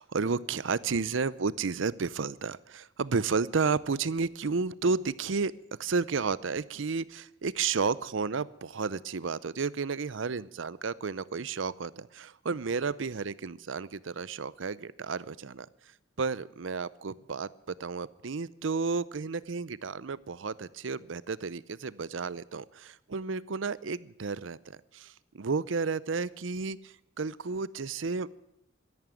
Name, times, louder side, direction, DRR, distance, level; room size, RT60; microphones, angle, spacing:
voice 1, 0.0-5.5 5.8-15.7 16.2-28.3, right 4 dB, 70° right, 19 dB, 0.6 m, -32 dB
13.0 x 11.0 x 9.0 m, 0.83 s
head